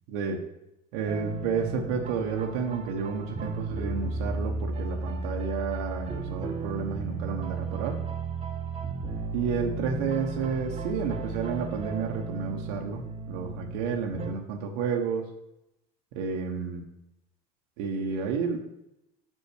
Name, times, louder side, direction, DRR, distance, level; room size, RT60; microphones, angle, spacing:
voice 1, 0.1-0.4 0.9-8.0 9.3-15.3 16.1-16.8 17.8-18.6, right 6 dB, 75° right, 2 dB, 1.0 m, -31 dB
sound 1, 1.1-14.3, right 3 dB, 30° right, 1.0 m, -34 dB
5.7 x 5.4 x 4.9 m, 0.86 s
supercardioid pair, 110°, 20 cm